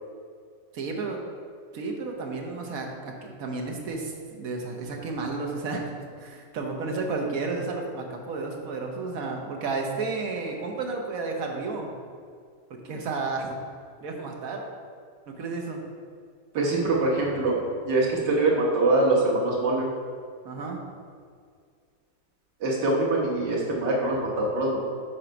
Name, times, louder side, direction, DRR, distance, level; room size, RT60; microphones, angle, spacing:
voice 1, 0.7-1.2 1.7-3.1 3.4-11.9 12.8-13.6 14.0-14.6 15.3-15.8 20.4-20.8, right 3 dB, 60° right, 1 dB, 1.2 m, -32 dB
voice 2, 16.5-17.6 17.9-19.9 22.6-24.8, right 2 dB, 85° right, -3 dB, 1.9 m, -23 dB
5.8 x 4.5 x 5.1 m, 2.1 s
omnidirectional pair, 1.8 m